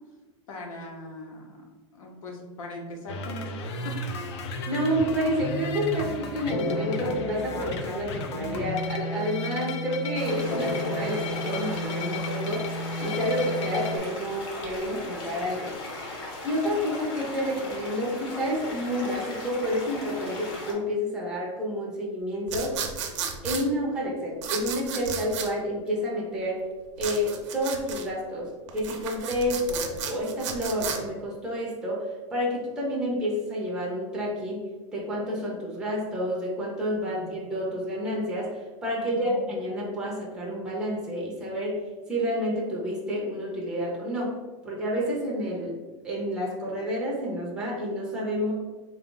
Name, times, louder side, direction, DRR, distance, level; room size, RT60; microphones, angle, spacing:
voice 1, 0.5-1.6 1.9-4.0 4.3-4.4 37.0-37.2 39.0-39.4, left 2 dB, 85° left, 0 dB, 1.0 m, -40 dB
sound 1, 3.1-14.0, left 1 dB, 55° left, 0.5 m, -32 dB
voice 2, 4.7-12.6 13.0-15.8 16.4-22.7 23.4-26.6 27.0-34.6 34.9-41.8 42.1-44.3 44.6-45.8 46.0-48.5, equal, 5° right, -4 dB, 0.5 m, -29 dB
sound 2, 10.1-20.7, left 2 dB, 35° left, 0.9 m, -38 dB
sound 3, 22.5-23.6 24.4-25.5 27.0-28.1 28.7-31.0, right 7 dB, 60° right, 0.6 m, -33 dB
3.7 x 2.4 x 3.7 m, 1.3 s
supercardioid pair, 170°, 17 cm